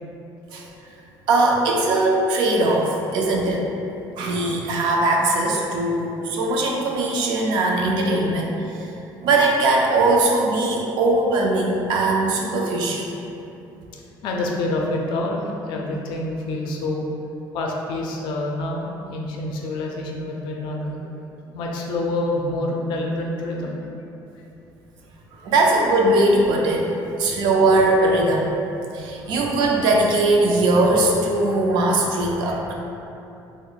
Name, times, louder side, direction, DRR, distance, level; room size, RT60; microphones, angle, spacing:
voice 1, 1.3-3.7 4.2-8.9 9.2-13.1 25.4-26.9 27.2-28.5 28.9-32.7, right 2 dB, 65° right, -1 dB, 0.4 m, -20 dB
voice 2, 5.9-6.4 14.2-17.1 17.5-23.9 24.3-24.5 27.2-27.5, left 2 dB, 65° left, -1 dB, 0.4 m, -28 dB
2.3 x 2.1 x 3.8 m, 2.8 s
cardioid pair, 180°, 8 cm